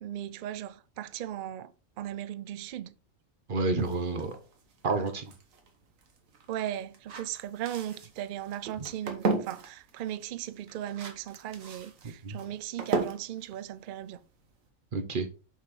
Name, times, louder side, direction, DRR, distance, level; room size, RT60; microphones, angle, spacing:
voice 1, 0.0-1.7 2.0-2.9 6.5-14.2, right 11 dB, 90° right, 0.4 m, -37 dB
voice 2, 3.5-4.4 4.8-5.3 8.8-8.9 12.0-12.4 14.9-15.3, right 3 dB, 45° right, 0.9 m, -30 dB
sound 1, 3.8-14.7, right 4 dB, 70° right, 1.5 m, -37 dB
7.1 x 6.0 x 3.1 m
omnidirectional pair, 1.5 m